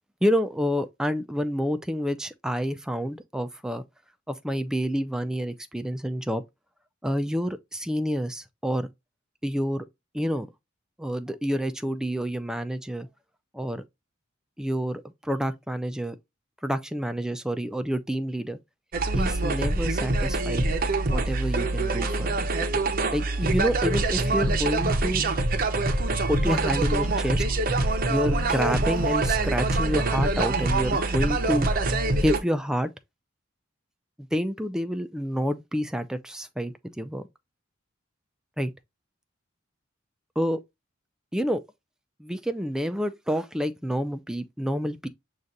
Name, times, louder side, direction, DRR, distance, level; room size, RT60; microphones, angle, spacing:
voice 1, 0.2-3.8 4.3-6.4 7.0-8.9 9.4-9.9 10.1-10.5 11.0-13.1 13.5-13.8 14.6-16.2 16.6-18.6 19.1-20.7 21.0-22.4 23.1-25.2 26.3-27.4 28.0-31.7 32.2-32.9 34.3-37.2 38.6-38.7 40.4-40.6 41.3-41.6 42.2-45.1, equal, 5° right, 0.3 m, -28 dB
sound 1, 18.9-32.4, right 2 dB, 45° right, 0.6 m, -25 dB
6.4 x 2.4 x 2.6 m
head